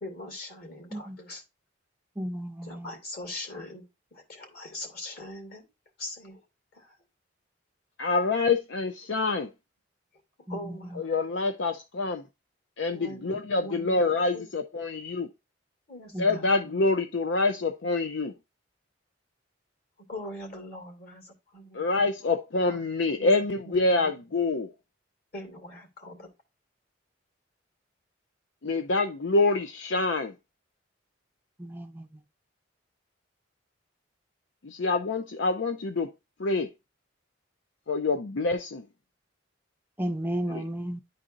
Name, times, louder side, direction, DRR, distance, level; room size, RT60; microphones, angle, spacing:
voice 1, 0.0-1.4 2.6-5.7 6.0-6.4 6.8-6.9 10.5-11.1 12.9-14.0 14.3-14.5 15.9-16.4 20.1-21.8 22.2-22.3 22.7-22.8 23.2-23.3 23.7-24.1 25.3-26.3, left 1 dB, 50° left, 2.4 m, -41 dB
voice 2, 2.2-2.9 10.5-11.0 16.1-16.4 31.6-32.1 40.0-41.0, right 1 dB, 10° right, 0.5 m, -34 dB
voice 3, 8.0-9.5 11.0-12.2 12.8-15.3 16.2-18.3 21.7-24.7 28.6-30.3 34.6-36.1 36.4-36.7 37.9-38.8 40.5-40.6, left 3 dB, 65° left, 0.6 m, -26 dB
11.0 x 4.2 x 2.5 m
head